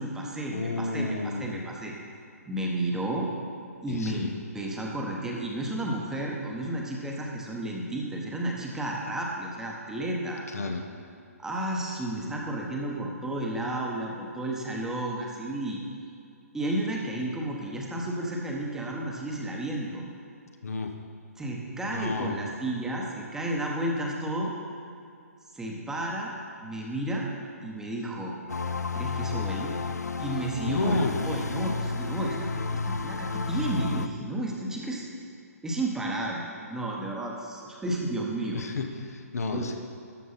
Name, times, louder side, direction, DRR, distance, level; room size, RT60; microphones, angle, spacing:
voice 1, 0.0-1.9 2.5-3.3 3.8-10.4 11.4-15.8 16.5-20.0 21.4-24.5 25.5-27.3 27.6-28.3 28.9-29.8 30.2-35.1 35.6-38.6 39.5-39.8, right 1 dB, 5° right, -2 dB, 1.1 m, -32 dB
voice 2, 0.5-1.7 3.9-4.3 10.5-10.9 20.6-20.9 21.9-22.4 30.6-31.2 38.5-39.8, left 3 dB, 70° left, 4 dB, 1.1 m, -31 dB
sound 1, 28.5-34.1, left 4 dB, 90° left, 0.5 m, -31 dB
13.0 x 5.3 x 5.6 m, 2.4 s
figure-of-eight pair, 140°, 9 cm